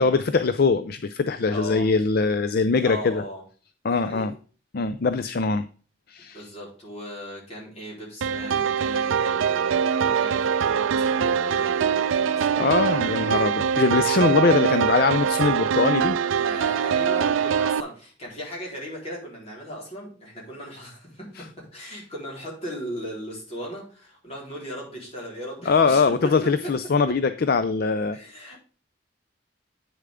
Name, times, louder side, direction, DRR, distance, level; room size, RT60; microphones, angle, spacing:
voice 1, 0.0-3.2 3.8-4.3 4.7-5.7 6.1-6.5 12.6-16.2 25.7-28.2, left 4 dB, 50° left, 12 dB, 0.5 m, -22 dB
voice 2, 1.5-1.9 2.8-3.4 3.9-4.3 6.3-13.2 16.4-26.4 26.6-26.7 27.1-27.2 28.1-28.6, equal, 35° left, -3 dB, 4.0 m, -37 dB
sound 1, 8.2-17.8, right 7 dB, 85° right, 0.4 m, -23 dB
8.9 x 6.7 x 3.6 m, 0.39 s
head